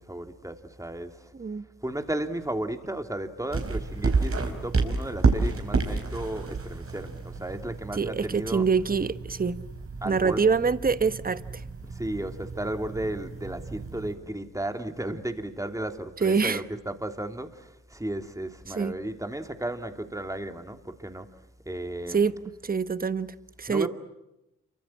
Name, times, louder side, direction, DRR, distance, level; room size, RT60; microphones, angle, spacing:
voice 1, 0.0-1.3 1.8-8.7 10.0-10.5 11.9-21.3 21.6-22.3 23.7-23.9, right 1 dB, 10° right, 3.0 m, -34 dB
sound 1, 3.5-14.1, right 4 dB, 45° right, 4.8 m, -30 dB
voice 2, 8.0-9.6 10.0-11.6 16.2-16.6 18.8-18.9 22.1-22.4 22.6-23.9, right 5 dB, 30° right, 1.2 m, -25 dB
27.5 x 24.5 x 7.5 m
supercardioid pair, 55°, 30 cm